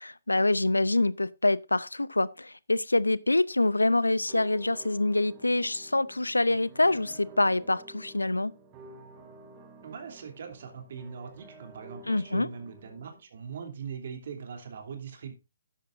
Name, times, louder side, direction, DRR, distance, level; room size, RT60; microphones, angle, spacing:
voice 1, 0.0-8.5 12.1-12.5, left 2 dB, 90° left, 0.7 m, -26 dB
sound 1, 4.3-13.2, right 1 dB, 25° right, 2.5 m, -51 dB
voice 2, 9.8-15.3, right 6 dB, 55° right, 3.1 m, -41 dB
13.0 x 10.5 x 2.6 m
figure-of-eight pair, 140°, 0 cm